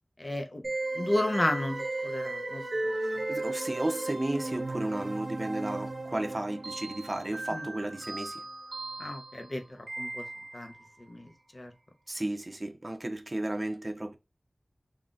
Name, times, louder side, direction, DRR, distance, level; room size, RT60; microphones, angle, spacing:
voice 1, 0.2-0.6 0.9-2.9 7.5-7.7 9.0-10.2 10.5-10.7 11.1-11.7, left 1 dB, 50° left, 0.7 m, -33 dB
sound 1, 0.6-10.8, right 2 dB, 75° right, 0.6 m, -36 dB
voice 2, 3.1-8.4 12.1-14.1, right 1 dB, 40° right, 0.7 m, -34 dB
3.7 x 2.3 x 2.5 m
wide cardioid pair, 45°, 0 cm